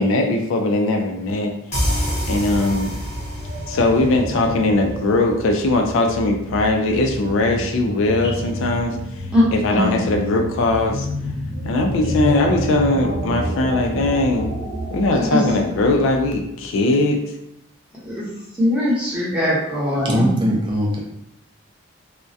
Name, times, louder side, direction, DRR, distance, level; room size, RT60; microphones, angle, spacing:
voice 1, 0.0-1.5 1.9-2.0 2.3-2.9 3.7-11.1 11.6-14.5 14.9-17.3, left 2 dB, 65° left, 3 dB, 0.3 m, -20 dB
sound 1, 1.7-5.2, equal, 30° left, 0.7 m, -27 dB
sound 2, 3.0-16.7, equal, 80° right, 0.9 m, -29 dB
voice 2, 15.2-15.5 18.0-18.2 18.6-20.3, left 1 dB, 5° right, -9 dB, 0.7 m, -20 dB
voice 3, 20.0-21.0, equal, 20° right, -2 dB, 0.4 m, -20 dB
2.3 x 2.1 x 2.6 m, 0.78 s
head